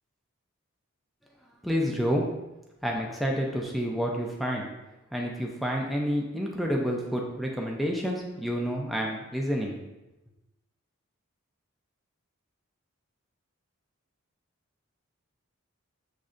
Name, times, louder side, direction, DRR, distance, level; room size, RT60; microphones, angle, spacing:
voice 1, 1.6-2.2 2.8-4.7 5.1-9.7, equal, ahead, -1 dB, 0.5 m, -29 dB
6.4 x 3.2 x 2.5 m, 0.99 s
head